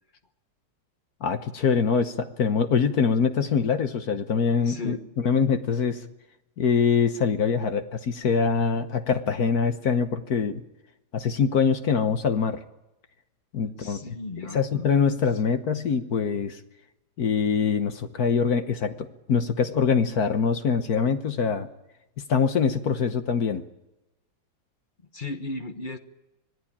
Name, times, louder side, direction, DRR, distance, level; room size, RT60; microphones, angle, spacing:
voice 1, 1.2-6.0 6.6-10.6 11.1-12.6 13.5-14.2 14.5-16.6 17.2-21.7 22.2-23.6, left 6 dB, 55° left, 9 dB, 1.4 m, -24 dB
voice 2, 4.6-5.0 13.8-14.9 25.1-26.0, left 2 dB, 30° left, 7 dB, 1.0 m, -35 dB
25.5 x 17.5 x 8.7 m, 0.99 s
omnidirectional pair, 2.2 m